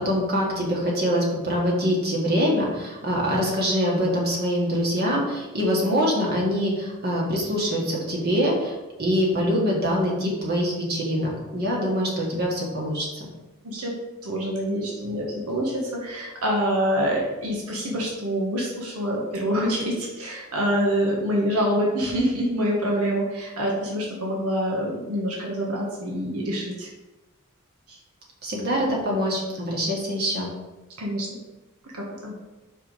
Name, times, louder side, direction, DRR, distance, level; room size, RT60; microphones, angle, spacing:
voice 1, 0.0-13.3 28.4-30.5, equal, 45° right, -3 dB, 1.8 m, -24 dB
voice 2, 14.2-26.9 27.9-28.0 31.0-31.3 31.9-32.3, equal, 80° right, -2 dB, 1.4 m, -26 dB
5.8 x 4.6 x 4.7 m, 1.1 s
head